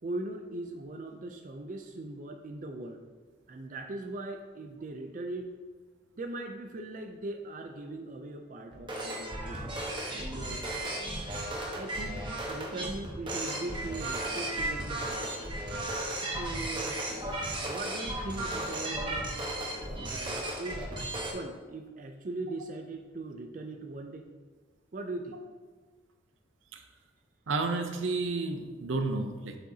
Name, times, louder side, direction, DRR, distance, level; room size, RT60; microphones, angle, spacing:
voice 1, 0.0-3.0 3.5-5.5 6.2-9.6 10.1-10.7 11.7-15.4 16.3-17.0 17.6-19.3 19.9-24.3 24.9-25.4, right 2 dB, 40° right, 4 dB, 0.4 m, -40 dB
sound 1, 8.7-21.3, right 1 dB, 25° right, 1.0 m, -35 dB
voice 2, 27.5-29.6, right 3 dB, 85° right, 6 dB, 0.6 m, -31 dB
7.5 x 5.1 x 2.7 m, 1.4 s
head